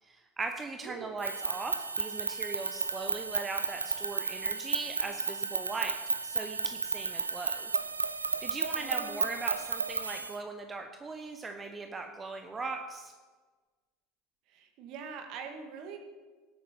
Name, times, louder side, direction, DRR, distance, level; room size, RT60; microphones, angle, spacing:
voice 1, 0.0-6.0 6.2-7.7 8.4-13.1, right 3 dB, 20° right, 5 dB, 1.0 m, -39 dB
voice 2, 0.8-1.2 8.7-9.4 14.5-16.0, right 6 dB, 50° right, 5 dB, 1.9 m, -44 dB
sound 1, 1.2-10.4, right 4 dB, 85° right, 0.5 m, -33 dB
17.5 x 8.5 x 4.5 m, 1.4 s
figure-of-eight pair, 75°, 0 cm